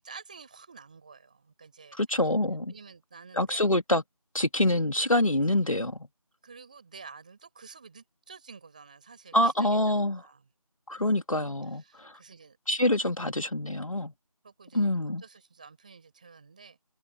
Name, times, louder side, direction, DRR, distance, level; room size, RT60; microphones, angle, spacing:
voice 1, 0.0-2.0 2.7-3.6 6.4-10.5 11.7-12.6 14.4-14.9 15.2-16.8, right 5 dB, 15° right, 5.6 m, -50 dB
voice 2, 1.9-2.7 3.3-4.0 4.3-6.0 9.3-10.2 10.9-12.1 12.7-14.1 14.7-15.2, left 1 dB, 60° left, 2.1 m, -26 dB
figure-of-eight pair, 170°, 19 cm